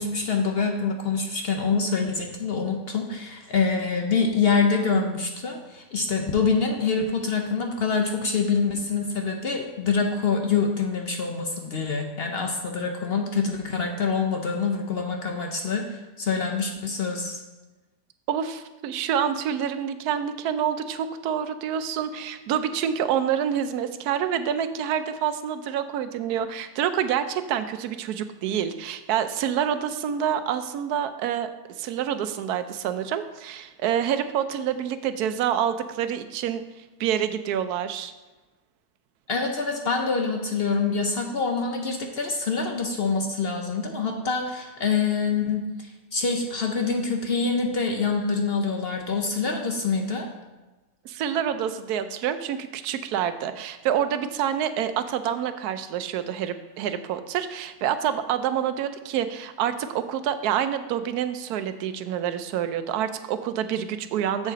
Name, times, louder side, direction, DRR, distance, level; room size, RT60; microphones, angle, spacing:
voice 1, 0.0-17.4 39.3-50.3, left 5 dB, 55° left, 3 dB, 0.7 m, -25 dB
voice 2, 18.3-31.5 31.8-36.6 37.0-38.1 51.0-64.5, right 9 dB, 90° right, 11 dB, 1.1 m, -27 dB
7.3 x 6.5 x 3.9 m, 1.2 s
omnidirectional pair, 1.6 m